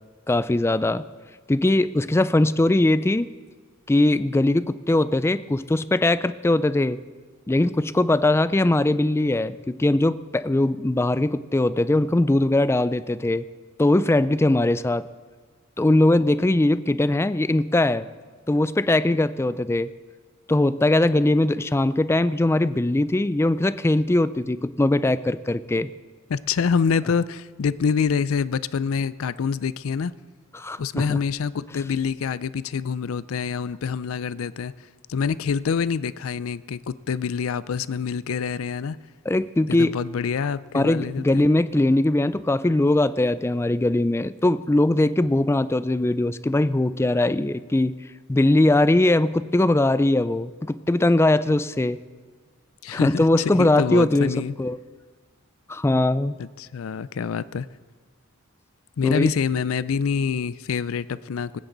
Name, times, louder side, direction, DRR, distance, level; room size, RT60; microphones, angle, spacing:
voice 1, 0.3-1.0 1.5-3.3 3.9-7.0 7.5-13.4 13.8-15.0 15.8-18.1 18.5-19.9 20.5-25.9 30.5-31.2 39.3-40.0 40.7-47.9 48.3-52.0 52.9-54.8 55.7-56.3 59.0-59.3, left 2 dB, 10° left, 15 dB, 0.3 m, -21 dB
voice 2, 26.3-30.1 30.8-39.0 39.7-41.5 52.8-54.5 56.4-57.7 59.0-61.6, left 6 dB, 80° left, 17 dB, 0.4 m, -26 dB
19.5 x 16.0 x 4.0 m, 1.5 s
head